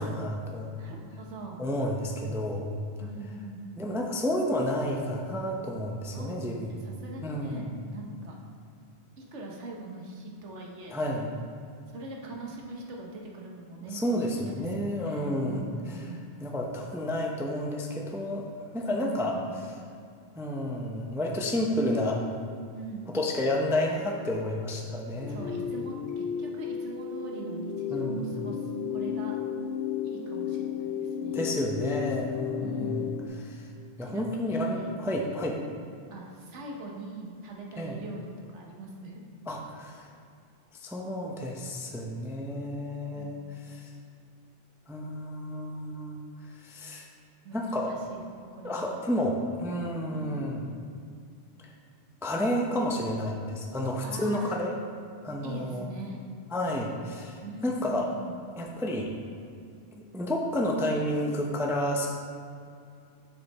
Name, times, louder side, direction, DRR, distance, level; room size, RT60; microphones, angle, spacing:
voice 1, 0.0-0.7 1.6-2.7 3.8-6.8 7.2-7.7 10.9-11.3 13.9-16.0 16.4-19.4 20.4-22.2 23.1-25.6 27.9-28.4 31.3-33.1 33.4-33.7 34.0-35.6 37.8-38.0 39.5-40.1 40.8-43.4 43.6-43.8 44.9-46.2 46.6-47.0 47.5-48.0 48.6-50.6 52.2-54.7 55.2-55.9 56.5-58.1 58.6-59.1 59.9-62.1, left 1 dB, 5° right, 0 dB, 0.4 m, -30 dB
voice 2, 0.7-1.6 3.0-4.1 6.1-8.3 9.2-11.0 11.9-16.2 18.8-19.6 22.7-23.1 25.1-29.4 30.0-31.6 32.6-33.3 34.0-34.9 36.1-39.2 43.1-43.4 47.4-47.6 47.9-48.2 48.5-48.9 50.1-50.4 54.0-54.6 55.4-56.2 57.4-58.3, right 3 dB, 90° right, -1 dB, 1.3 m, -42 dB
sound 1, 25.2-33.3, left 7 dB, 65° left, 0.8 m, -33 dB
6.7 x 5.3 x 4.1 m, 2.4 s
omnidirectional pair, 1.2 m